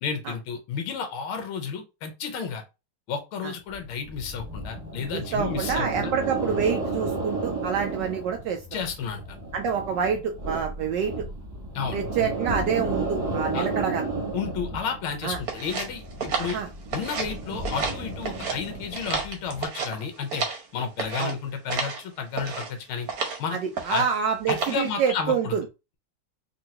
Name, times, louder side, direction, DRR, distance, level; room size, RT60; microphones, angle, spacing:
voice 1, 0.0-2.6 3.1-6.1 8.7-9.4 11.7-12.0 13.5-13.7 14.3-16.6 16.9-20.4 20.7-23.1 23.4-24.1 24.5-25.6, left 6 dB, 75° left, 5 dB, 1.7 m, -32 dB
sound 1, 3.7-19.7, right 2 dB, 25° right, 1.0 m, -33 dB
voice 2, 5.1-8.6 9.5-11.1 11.9-14.0 15.2-15.4 16.4-16.7 21.2-21.3 23.5-25.6, right 7 dB, 80° right, 5 dB, 0.9 m, -27 dB
sound 2, 15.5-17.4 17.6-18.6 18.9-20.7 21.0-21.3 21.7-22.0 22.3-22.7 23.1-23.4 23.7-24.2 24.5-24.9, right 5 dB, 55° right, 1.2 m, -31 dB
4.4 x 2.5 x 2.9 m, 0.27 s
omnidirectional pair, 2.4 m